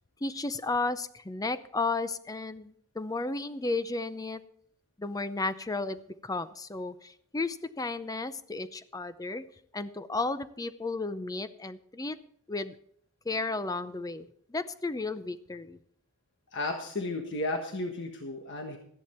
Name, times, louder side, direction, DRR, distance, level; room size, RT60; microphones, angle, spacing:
voice 1, 0.2-4.4 5.0-9.5 9.7-12.2 12.5-12.8 13.2-15.8, left 3 dB, 15° left, 13 dB, 0.6 m, -33 dB
voice 2, 16.5-18.8, left 2 dB, 55° left, 3 dB, 1.4 m, -33 dB
13.5 x 11.0 x 4.3 m, 0.65 s
head